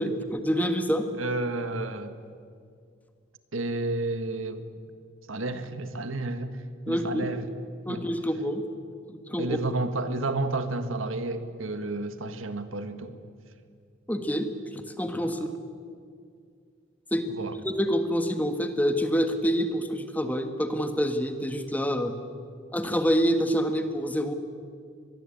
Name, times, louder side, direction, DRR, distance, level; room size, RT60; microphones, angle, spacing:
voice 1, 0.0-1.1 6.9-7.3 7.8-8.6 9.1-9.6 14.1-15.4 17.1-17.3 17.6-22.1 22.7-24.3, equal, 10° left, 7 dB, 1.5 m, -27 dB
voice 2, 1.2-2.2 3.5-4.6 5.3-7.4 7.9-8.1 9.4-13.2 15.2-15.5 17.3-17.6, right 2 dB, 85° right, 9 dB, 1.8 m, -31 dB
25.0 x 21.0 x 8.7 m, 2.3 s
head